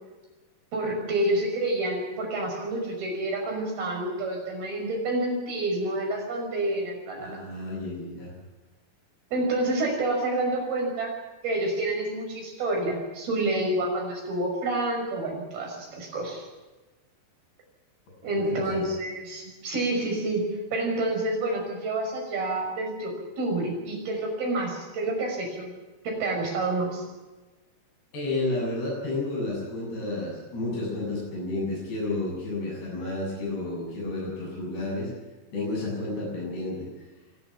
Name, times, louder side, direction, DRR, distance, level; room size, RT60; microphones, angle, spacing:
voice 1, 0.7-7.4 9.3-11.1 11.4-16.5 18.2-25.7 26.0-27.0, right 2 dB, 65° right, 1 dB, 7.9 m, -28 dB
voice 2, 7.2-8.3 18.3-18.9 28.1-35.1 35.5-36.9, left 2 dB, 85° left, -4 dB, 10.5 m, -31 dB
25.0 x 11.5 x 9.8 m, 1.2 s
omnidirectional pair, 4.7 m